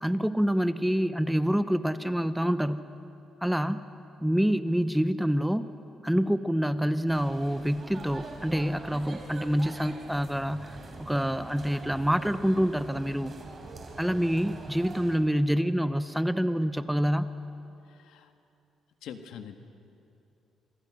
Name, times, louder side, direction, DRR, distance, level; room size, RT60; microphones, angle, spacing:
voice 1, 0.0-2.8 3.4-3.8 4.2-5.7 6.0-13.3 14.0-17.3, equal, 5° right, 12 dB, 0.9 m, -27 dB
sound 1, 7.1-15.2, right 3 dB, 40° right, 4.1 m, -44 dB
voice 2, 17.8-18.3 19.0-19.6, left 8 dB, 85° left, 7 dB, 1.6 m, -44 dB
27.0 x 24.0 x 6.3 m, 2.8 s
cardioid pair, 90°, 0 cm